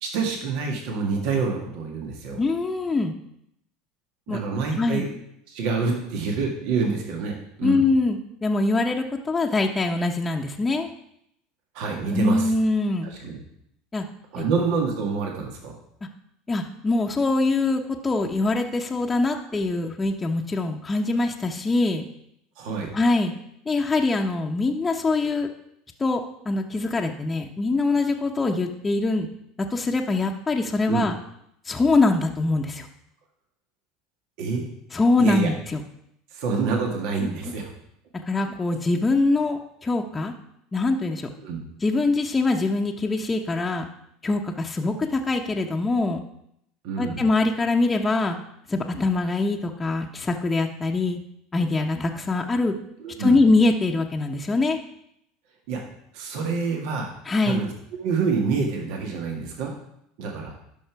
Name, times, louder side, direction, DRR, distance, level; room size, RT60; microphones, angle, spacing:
voice 1, 0.0-2.4 4.3-5.1 5.5-7.8 11.7-12.5 13.0-13.4 14.3-15.7 22.6-22.9 30.9-31.1 34.4-34.6 34.9-35.5 36.3-37.7 41.4-41.6 46.8-47.2 53.0-53.4 55.7-55.8 56.1-57.1 57.4-57.7 58.0-59.7 60.2-60.5, right 5 dB, 65° right, 1 dB, 1.9 m, -27 dB
voice 2, 2.4-3.1 4.3-4.4 4.8-5.0 7.6-10.9 12.1-13.1 13.9-14.0 14.4-14.5 16.5-22.0 22.9-23.3 23.7-25.5 26.0-29.3 29.6-31.1 31.7-32.9 34.9-35.8 37.2-37.5 38.3-40.3 40.7-41.3 41.8-43.9 44.2-46.2 47.0-48.4 48.7-51.2 51.5-52.7 53.2-54.8 57.3-57.6, left 3 dB, 20° left, 1 dB, 0.9 m, -23 dB
12.0 x 5.4 x 4.7 m, 0.75 s
hypercardioid pair, 85°, 0 cm